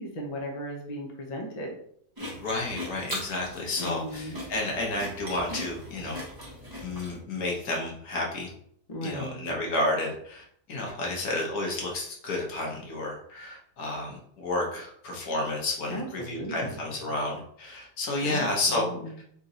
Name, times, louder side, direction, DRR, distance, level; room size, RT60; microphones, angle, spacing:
voice 1, 0.0-1.8 3.8-4.4 8.9-9.5 15.9-16.8 18.2-19.2, equal, 35° left, 0 dB, 0.7 m, -36 dB
voice 2, 2.2-6.2 6.8-8.5 9.0-10.4 10.7-18.9 19.2-19.3, left 2 dB, 75° left, -1 dB, 1.5 m, -31 dB
sound 1, 2.2-7.2, equal, 15° right, 1.0 m, -39 dB
3.6 x 2.9 x 3.8 m, 0.66 s
omnidirectional pair, 1.6 m